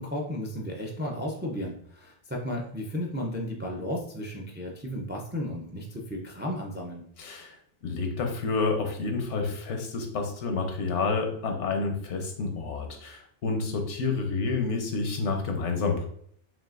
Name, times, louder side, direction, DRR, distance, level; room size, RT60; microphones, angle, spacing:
voice 1, 0.0-7.0, left 1 dB, 15° right, 0 dB, 0.3 m, -34 dB
voice 2, 7.2-7.6 7.8-16.1, left 4 dB, 80° left, 4 dB, 1.1 m, -29 dB
5.9 x 2.5 x 2.5 m, 0.63 s
omnidirectional pair, 1.2 m